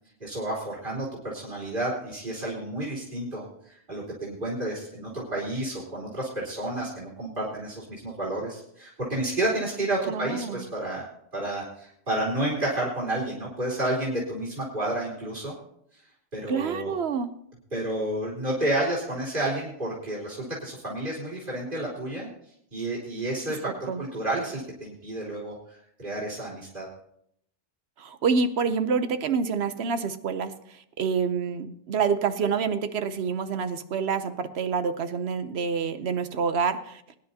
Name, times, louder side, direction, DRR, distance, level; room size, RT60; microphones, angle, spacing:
voice 1, 0.2-11.1 11.3-15.5 15.9-16.0 16.3-16.9 17.7-22.3 22.7-26.9, right 1 dB, 55° right, -6 dB, 3.7 m, -31 dB
voice 2, 10.1-10.6 16.5-17.3 23.9-24.0 28.0-37.0, right 5 dB, 80° right, 10 dB, 1.0 m, -27 dB
22.5 x 10.5 x 2.8 m, 0.72 s
omnidirectional pair, 1.1 m